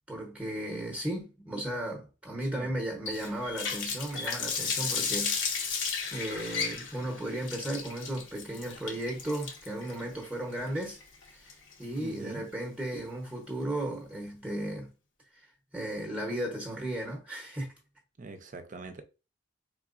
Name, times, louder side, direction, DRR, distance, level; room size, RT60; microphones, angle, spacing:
voice 1, 0.1-5.7 6.1-11.0 11.3-11.5 11.8-14.9 15.7-17.7, right 1 dB, 5° right, 0.8 m, -35 dB
voice 2, 2.4-2.8 12.0-12.5 18.2-19.0, right 3 dB, 40° right, 0.6 m, -43 dB
Water tap faucet, 3.1-12.0, left 5 dB, 70° left, 0.9 m, -34 dB
4.5 x 3.7 x 2.5 m
head